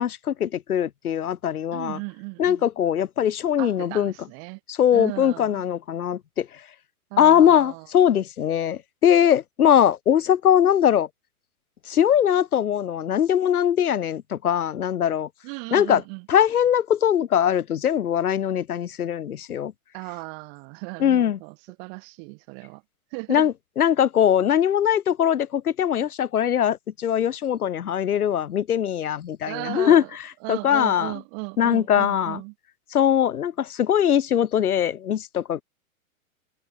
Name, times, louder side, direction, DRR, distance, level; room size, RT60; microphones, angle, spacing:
voice 1, 0.0-2.0 2.4-4.1 4.7-6.5 7.2-11.1 11.9-15.3 15.7-16.0 16.3-19.7 21.0-21.4 23.3-30.0 30.5-31.1 31.6-32.4 32.9-35.6, left 9 dB, 90° left, 2.2 m, -21 dB
voice 2, 1.7-2.7 3.6-4.6 4.9-5.6 7.1-7.9 15.4-16.3 19.9-22.8 23.1-23.5 29.5-32.5, right 40 dB or more, 35° right, 5.2 m, -36 dB
hypercardioid pair, 155°, 43 cm